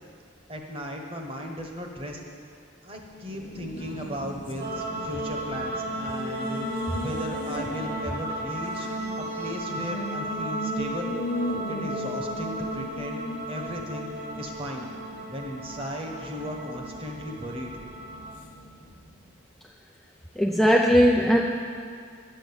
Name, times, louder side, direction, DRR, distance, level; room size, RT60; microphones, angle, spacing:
voice 1, 0.5-2.2 2.8-8.9 9.3-11.2 11.7-13.2 13.5-14.1 14.4-14.9 15.3-17.7, equal, 30° right, 2 dB, 1.1 m, -36 dB
Race car auto racing, 3.0-19.3, left 1 dB, 40° left, 1.3 m, -38 dB
sound 1, 4.6-18.3, right 1 dB, 55° right, 1.5 m, -35 dB
voice 2, 20.4-21.4, equal, ahead, -1 dB, 0.4 m, -19 dB
10.0 x 7.8 x 7.0 m, 2.2 s
head